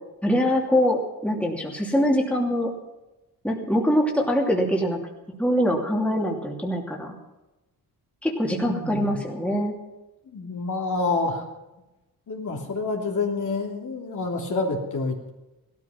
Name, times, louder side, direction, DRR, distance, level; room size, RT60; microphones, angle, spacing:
voice 1, 0.2-2.7 3.4-5.0 5.4-7.1 8.2-9.7, equal, 5° left, -1 dB, 2.8 m, -23 dB
voice 2, 8.6-9.1 10.3-11.5 12.3-15.3, left 3 dB, 50° left, 0 dB, 3.1 m, -28 dB
16.5 x 13.5 x 5.9 m, 1.0 s
cardioid pair, 100°, 37 cm